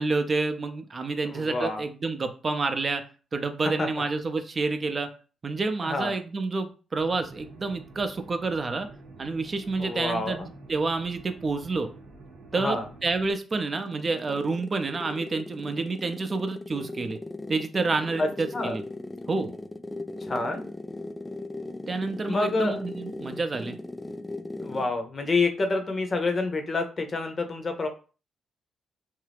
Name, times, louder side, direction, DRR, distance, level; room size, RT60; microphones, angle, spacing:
voice 1, 0.0-3.0 3.3-5.1 5.4-8.9 9.2-11.9 12.5-17.2 17.5-18.8 19.3-19.5 21.9-23.7, right 3 dB, 40° right, 8 dB, 0.5 m, -29 dB
voice 2, 1.3-1.8 3.8-3.9 5.8-6.1 9.8-10.5 12.5-12.9 18.2-18.8 20.2-20.6 22.3-22.8 24.6-27.9, left 3 dB, 40° left, 6 dB, 0.7 m, -28 dB
sound 1, 7.0-13.3, right 3 dB, 80° right, 0.7 m, -48 dB
sound 2, 13.2-25.0, left 2 dB, 15° left, 0.3 m, -39 dB
2.6 x 2.3 x 3.4 m, 0.36 s
supercardioid pair, 50°, 0 cm